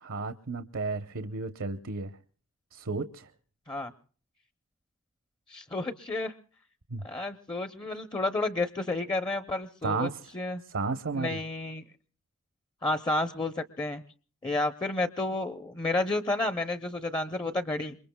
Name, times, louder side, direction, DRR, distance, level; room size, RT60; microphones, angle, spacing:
voice 1, 0.0-2.2 2.7-3.3 6.9-7.0 9.8-10.3 10.6-11.4, right 3 dB, 65° right, 10 dB, 0.8 m, -33 dB
voice 2, 5.5-6.3 7.0-10.6 11.1-11.8 12.8-14.0 14.4-18.0, left 2 dB, 20° left, 9 dB, 0.7 m, -31 dB
27.0 x 23.0 x 2.2 m, 0.43 s
head